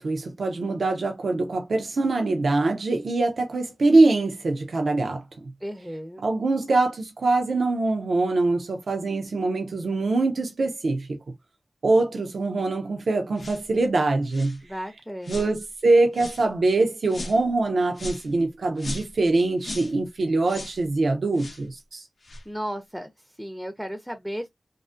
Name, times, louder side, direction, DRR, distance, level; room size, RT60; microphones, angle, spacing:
voice 1, 0.0-5.5 6.2-11.2 11.8-14.6 15.3-22.1, right 2 dB, 90° right, 0.4 m, -23 dB
voice 2, 5.6-6.2 14.6-15.5 22.5-24.5, equal, 5° right, 0.4 m, -35 dB
sound 1, 13.4-13.6 14.3-14.6 15.2-15.5 16.1-16.4 17.1-17.4 17.9-18.3 18.8-19.2 19.6-19.9 20.4-20.8 21.4-21.6 22.2-22.4, left 2 dB, 75° left, 0.5 m, -37 dB
2.4 x 2.4 x 2.4 m
wide cardioid pair, 50°, 0 cm